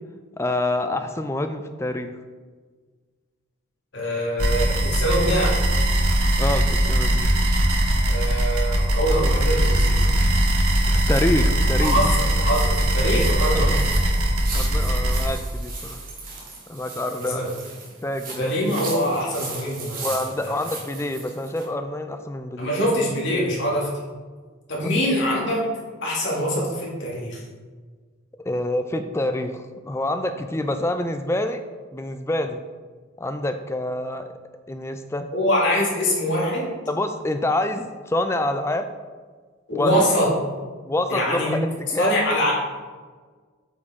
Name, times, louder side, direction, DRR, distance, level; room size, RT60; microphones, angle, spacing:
voice 1, 0.4-2.1 6.4-7.4 10.9-12.0 13.1-13.2 14.5-16.0 16.7-17.4 18.0-18.5 20.0-22.7 24.8-24.9 28.4-31.6 31.9-32.6 33.2-34.3 34.7-35.3 36.9-38.9 39.7-40.0 40.9-41.6 41.9-42.2, left 1 dB, 10° left, 8 dB, 0.3 m, -26 dB
voice 2, 3.9-5.6 8.1-10.1 11.8-13.7 17.2-17.5 18.4-20.2 20.4-20.5 22.6-23.9 24.7-25.6 26.0-27.4 35.3-36.7 39.7-40.3 41.1-41.6 42.0-42.5, equal, 55° left, -4 dB, 2.1 m, -24 dB
sound 1, 4.4-15.3, right 1 dB, 85° right, 1.2 m, -20 dB
sound 2, 9.5-21.7, right 4 dB, 40° right, 1.4 m, -38 dB
8.3 x 5.0 x 3.6 m, 1.5 s
head